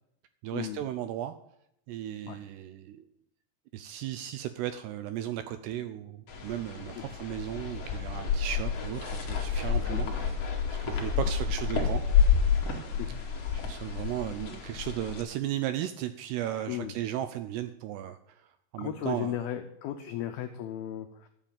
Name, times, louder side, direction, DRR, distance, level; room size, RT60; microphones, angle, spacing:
voice 1, 0.4-1.3 1.9-3.1 3.7-10.3 10.7-12.0 13.6-19.4, right 12 dB, 80° right, 11 dB, 2.4 m, -35 dB
sound 1, 6.3-15.2, left 6 dB, 45° left, 2.5 m, -29 dB
voice 2, 18.8-21.3, left 11 dB, 85° left, 7 dB, 2.1 m, -35 dB
13.0 x 7.5 x 8.8 m, 0.78 s
omnidirectional pair, 5.4 m